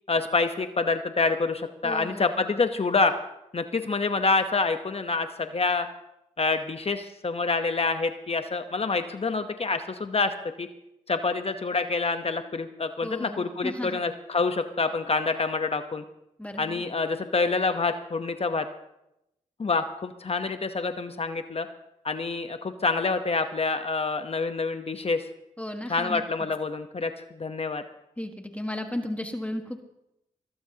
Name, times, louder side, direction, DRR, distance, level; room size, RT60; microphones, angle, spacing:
voice 1, 0.1-3.1 3.5-5.9 6.4-10.3 10.6-10.7 11.1-16.0 16.6-18.7 19.6-21.7 22.0-25.3 25.9-27.8, left 4 dB, 45° left, 8 dB, 0.9 m, -27 dB
voice 2, 1.8-2.6 13.0-14.0 16.4-16.8 25.6-26.2 28.2-29.9, left 1 dB, 10° left, 4 dB, 1.5 m, -35 dB
20.0 x 18.0 x 2.9 m, 0.86 s
cardioid pair, 45°, 15 cm